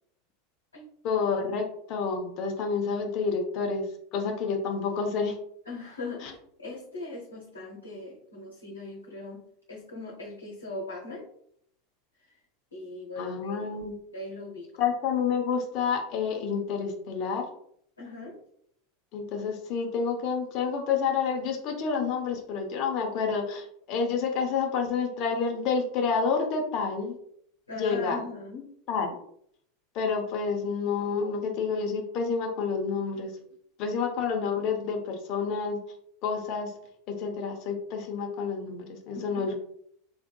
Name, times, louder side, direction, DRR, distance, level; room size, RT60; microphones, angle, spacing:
voice 1, 1.0-3.8 4.1-5.3 6.2-6.3 13.2-14.0 14.8-17.5 19.1-27.2 27.8-28.2 28.9-29.2 29.9-33.3 33.8-35.8 36.2-36.7 37.2-39.5, left 5 dB, 45° left, 2 dB, 0.7 m, -29 dB
voice 2, 5.7-11.3 12.7-13.8 14.1-14.7 18.0-18.4 27.7-28.7 39.1-39.5, left 2 dB, 80° left, -2 dB, 0.9 m, -40 dB
3.5 x 3.5 x 2.2 m, 0.69 s
figure-of-eight pair, 85°, 0 cm